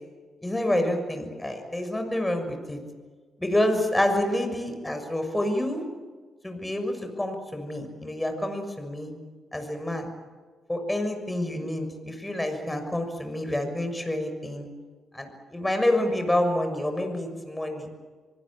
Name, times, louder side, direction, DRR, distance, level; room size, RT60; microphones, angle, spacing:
voice 1, 0.4-2.8 3.4-5.8 6.4-9.1 9.5-10.1 10.7-14.7 15.1-17.9, left 1 dB, 15° left, 6 dB, 6.5 m, -28 dB
25.0 x 20.5 x 8.8 m, 1.4 s
hypercardioid pair, 45°, 0 cm